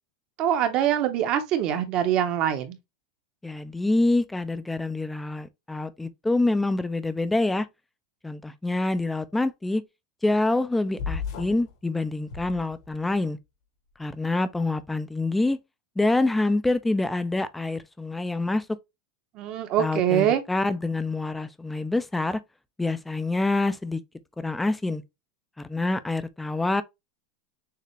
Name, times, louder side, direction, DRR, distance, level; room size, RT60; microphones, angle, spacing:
voice 1, 0.4-2.8 19.3-20.4, right 10 dB, 30° right, 0.7 m, -24 dB
voice 2, 3.4-7.7 8.2-9.8 10.2-13.4 14.0-15.6 16.0-18.7 19.8-22.4 22.8-24.0 24.4-25.0 25.6-26.8, left 2 dB, 5° left, 0.4 m, -26 dB
sound 1, 11.0-11.7 12.2-13.2, left 6 dB, 65° left, 1.5 m, -34 dB
6.6 x 2.4 x 3.0 m
supercardioid pair, 170°, 2 cm